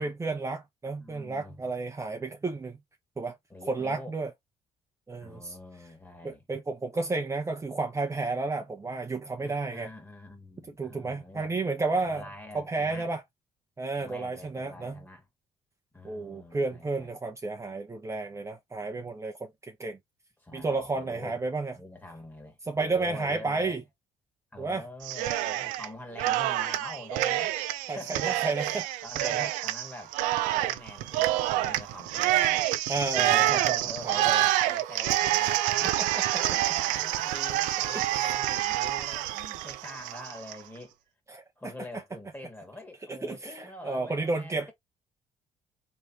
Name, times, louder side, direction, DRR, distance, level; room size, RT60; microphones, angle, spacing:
voice 1, 0.0-2.8 3.2-3.4 3.7-4.3 5.1-5.5 6.2-9.9 10.8-12.2 12.5-13.2 13.8-15.0 16.0-20.0 20.5-21.7 22.7-23.8 24.6-24.8 27.9-28.9 29.2-29.4 32.9-34.4 35.4-35.5 36.0-36.2 37.9-38.3 41.3-41.4 43.1-44.7, right 3 dB, 20° right, 0.8 m, -32 dB
voice 2, 1.0-1.6 3.5-4.1 5.2-6.4 9.4-11.5 12.0-13.1 14.0-15.3 15.9-17.1 20.4-21.4 21.7-23.8 24.5-27.6 27.9-28.4 29.0-30.2 30.5-32.7 33.1-40.9 41.6-44.7, left 1 dB, 15° left, 1.9 m, -45 dB
Cheering, 25.0-25.9 26.2-40.6, right 14 dB, 85° right, 0.5 m, -27 dB
3.3 x 3.3 x 2.8 m
supercardioid pair, 75°, 13 cm